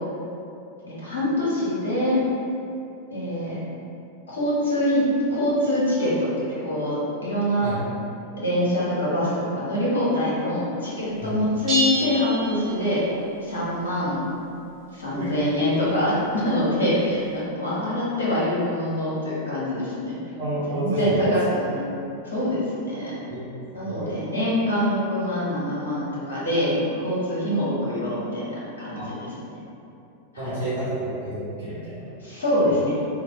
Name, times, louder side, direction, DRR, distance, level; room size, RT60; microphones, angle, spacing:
voice 1, 0.9-2.2 3.1-3.6 4.3-5.0 5.3-7.8 8.4-13.0 13.4-14.2 14.9-20.1 20.7-21.8 22.2-23.1 23.7-29.6 30.3-30.5 32.2-32.9, left 1 dB, 70° left, -8 dB, 0.7 m, -25 dB
sound 1, 11.7-13.3, right 1 dB, 20° right, 1.1 m, -27 dB
voice 2, 20.4-21.4 23.3-23.4 23.8-24.1 28.9-29.1 30.4-32.1, right 1 dB, 60° right, -12 dB, 0.8 m, -29 dB
3.1 x 2.0 x 2.3 m, 2.7 s
figure-of-eight pair, 90°, 0 cm